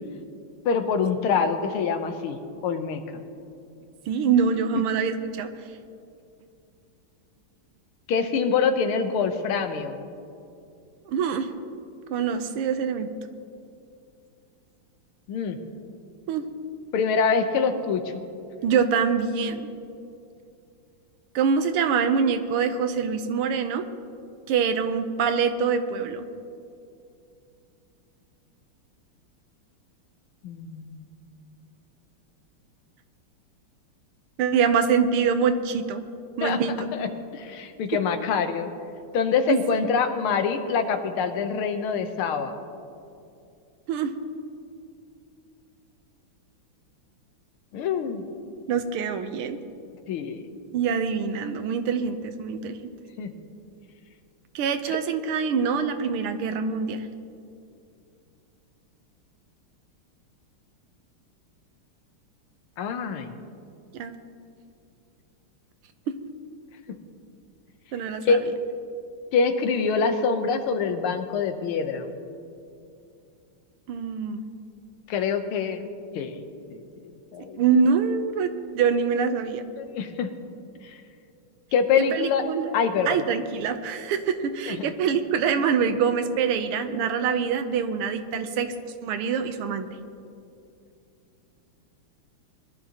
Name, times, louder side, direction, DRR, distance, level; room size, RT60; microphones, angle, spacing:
voice 1, 0.7-2.4 2.6-3.0 8.1-10.0 15.3-15.6 16.9-18.0 30.4-31.0 36.4-36.6 37.0-37.1 37.3-38.7 39.1-42.6 47.7-48.3 50.1-50.5 53.2-53.3 62.8-63.3 68.3-68.4 69.3-72.1 75.1-75.9 76.2-76.4 76.7-76.8 77.3-77.6 79.8-80.3 81.7-82.4 82.7-83.2 84.7-84.9, left 5 dB, 85° left, 7 dB, 1.8 m, -25 dB
voice 2, 4.1-5.5 11.0-11.5 12.1-13.1 16.3-16.4 18.6-19.6 21.3-23.8 24.5-26.2 34.4-36.0 36.4-36.9 39.5-39.9 43.9-44.1 48.7-49.6 50.7-52.9 54.5-57.1 63.9-64.1 67.9-68.4 73.9-74.4 77.5-79.6 82.1-82.7 83.1-88.7 89.0-89.9, right 6 dB, 85° right, 9 dB, 1.7 m, -25 dB
21.5 x 12.0 x 2.9 m, 2.6 s
omnidirectional pair, 2.4 m